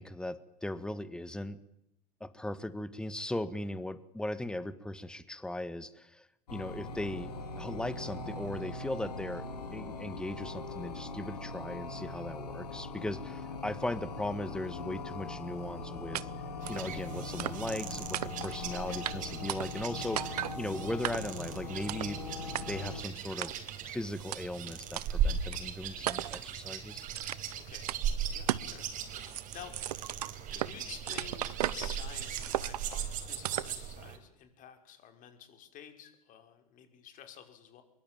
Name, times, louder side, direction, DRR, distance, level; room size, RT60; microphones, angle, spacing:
voice 1, 0.0-1.6 2.2-7.3 7.6-16.3 16.7-22.2 22.7-23.5 23.9-27.0, left 1 dB, 5° left, 15 dB, 1.7 m, -38 dB
sound 1, 6.5-23.0, left 3 dB, 90° left, 3.9 m, -41 dB
sound 2, 16.1-16.2 16.7-16.8 17.4-17.8 18.1-18.6 19.0-19.1 19.5-19.9 20.2-20.6 21.0-21.4 21.9-22.1 22.5-22.6 23.4-23.8 24.3-24.4 25.0-25.1 25.5-25.6 26.1-26.5 27.1-27.5 27.9-28.0 28.5-28.7 29.0-30.7 31.1-31.9 32.4-33.0 33.4-33.7, right 12 dB, 80° right, 1.0 m, -35 dB
sound 3, 16.6-34.2, right 8 dB, 40° right, 4.9 m, -38 dB
voice 2, 27.5-27.9 28.3-28.9 29.3-30.1 30.5-37.8, left 9 dB, 40° left, 7 dB, 5.5 m, -51 dB
24.5 x 22.5 x 9.1 m, 0.81 s
hypercardioid pair, 100°, 20 cm